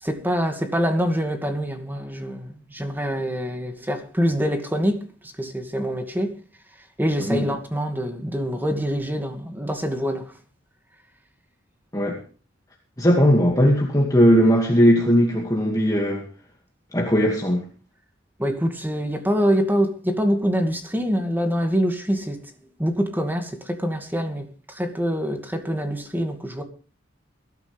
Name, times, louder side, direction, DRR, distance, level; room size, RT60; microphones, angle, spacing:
voice 1, 0.0-5.0 5.4-6.3 7.0-10.3 18.4-22.4 22.8-26.6, equal, 10° right, 2.3 m, -25 dB
voice 2, 13.0-16.3 16.9-17.7, equal, 20° left, 2.3 m, -18 dB
21.0 x 13.0 x 3.5 m
head